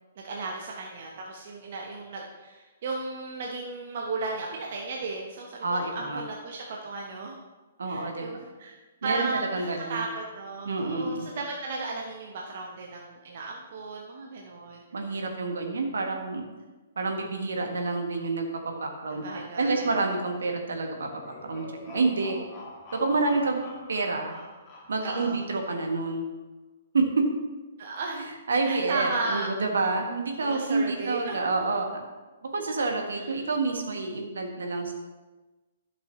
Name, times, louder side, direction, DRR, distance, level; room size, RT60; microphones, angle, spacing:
voice 1, 0.2-7.4 7.8-8.7 9.0-14.8 19.1-19.9 25.0-25.4 27.8-28.3 28.6-29.5 30.4-31.7 33.1-33.4, right 3 dB, 50° right, 0 dB, 1.0 m, -35 dB
voice 2, 5.6-6.2 7.8-8.2 9.0-10.0 10.6-11.3 14.9-16.4 17.0-19.2 19.6-21.1 21.4-22.4 22.9-23.6 23.9-24.4 24.9-26.2 26.9-27.0 28.5-32.0 32.5-34.9, right 3 dB, 70° right, 3 dB, 1.3 m, -28 dB
sound 1, 20.9-26.0, left 2 dB, 25° left, 2.0 m, -47 dB
11.0 x 6.1 x 3.1 m, 1.2 s
figure-of-eight pair, 125°, 0 cm